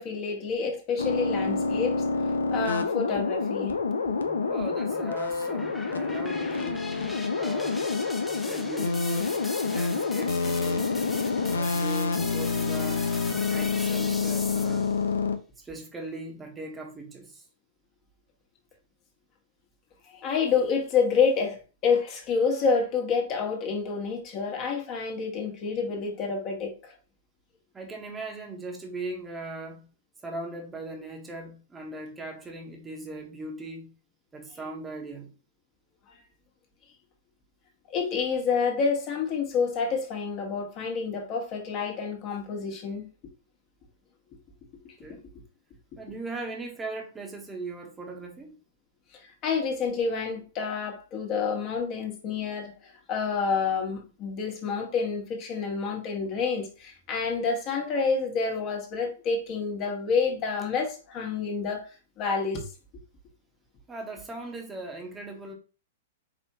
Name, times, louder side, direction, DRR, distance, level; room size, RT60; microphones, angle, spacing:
voice 1, 0.0-2.0 2.5-3.7 20.1-26.9 37.9-43.1 44.8-44.9 49.4-61.8 62.2-62.6, left 5 dB, 40° left, 1.5 m, -28 dB
sound 1, 1.0-15.4, left 4 dB, 85° left, 0.5 m, -28 dB
sound 2, 3.9-15.0, left 2 dB, 5° left, 0.6 m, -41 dB
voice 2, 4.5-6.9 7.3-8.0 8.4-9.4 9.7-10.9 11.4-13.1 13.5-14.9 15.6-17.4 27.7-29.9 30.2-33.9 34.3-35.3 45.0-45.2 46.0-48.6 63.9-65.5, right 2 dB, 15° right, 1.3 m, -39 dB
4.8 x 3.5 x 2.9 m
hypercardioid pair, 110°, 0 cm